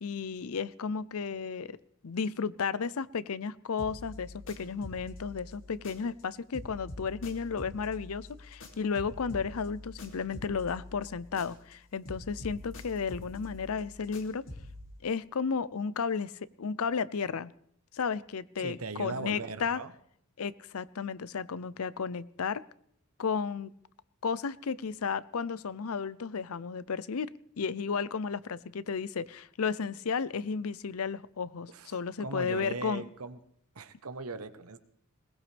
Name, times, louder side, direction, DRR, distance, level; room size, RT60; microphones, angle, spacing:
voice 1, 0.0-1.8 2.0-14.4 15.0-17.5 17.9-19.8 20.4-22.6 23.2-23.7 24.2-27.3 27.6-33.0, left 5 dB, 75° left, 18 dB, 0.6 m, -33 dB
sound 1, 3.8-6.3 6.5-11.8 12.0-14.8, left 1 dB, 60° left, 2.7 m, -46 dB
voice 2, 18.6-19.9 31.7-33.4 33.7-34.8, right 3 dB, 80° right, 10 dB, 1.1 m, -39 dB
21.5 x 19.0 x 3.4 m, 0.67 s
head